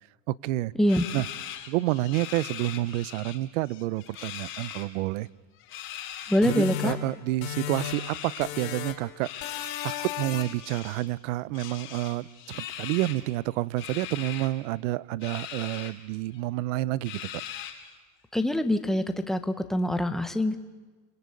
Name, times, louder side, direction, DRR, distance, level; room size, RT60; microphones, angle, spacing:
voice 1, 0.3-0.7 1.1-1.3 1.7-5.3 6.4-17.2, right 17 dB, 65° right, 22 dB, 0.8 m, -29 dB
sound 1, 0.9-3.4 3.6-4.9 5.6-6.9 7.7-8.5 9.2-11.1 11.5-13.2 13.8-14.5 15.2-15.9 16.3-16.4 17.0-17.9, left 10 dB, 30° left, 2.9 m, -40 dB
voice 2, 6.3-6.9 18.3-20.6, left 1 dB, ahead, 8 dB, 0.9 m, -25 dB
sound 2, 6.4-8.1 8.4-9.1 9.4-10.7, left 10 dB, 80° left, 4.0 m, -35 dB
29.5 x 23.5 x 8.5 m, 1.3 s
supercardioid pair, 165°, 41 cm